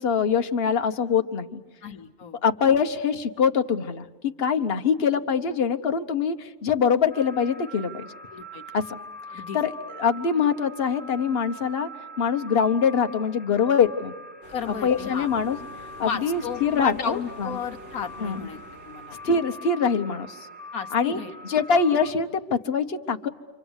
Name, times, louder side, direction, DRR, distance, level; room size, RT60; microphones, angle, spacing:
voice 1, 0.0-1.6 2.4-8.1 8.7-8.8 9.5-9.7 10.0-11.9 12.2-14.1 14.8-15.6 16.0-17.5 18.2-18.4 19.2-20.4 20.9-21.2 21.4-23.3, left 6 dB, 45° left, 6 dB, 1.2 m, -23 dB
voice 2, 1.8-2.4 8.3-8.6 9.3-9.6 14.5-15.3 16.0-19.2 20.7-21.6, left 7 dB, 75° left, 6 dB, 1.5 m, -34 dB
sound 1, 7.1-22.1, equal, 5° right, 2.4 m, -43 dB
sound 2, 14.4-19.6, equal, 50° right, 7.6 m, -46 dB
29.0 x 25.0 x 8.1 m, 1.2 s
omnidirectional pair, 1.5 m